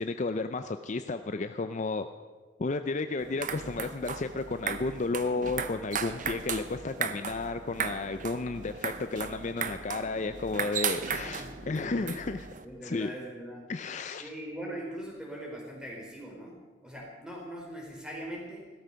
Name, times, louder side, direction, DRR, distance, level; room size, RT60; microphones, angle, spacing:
voice 1, 0.0-2.1 2.6-12.5 12.8-13.1 13.7-14.3, left 3 dB, 40° left, 9 dB, 0.5 m, -32 dB
sound 1, 3.2-12.6, right 7 dB, 40° right, 0.8 m, -36 dB
voice 2, 11.1-12.1 12.6-13.7 14.2-18.7, right 1 dB, 5° right, -2 dB, 4.0 m, -41 dB
16.5 x 13.0 x 5.7 m, 1.4 s
head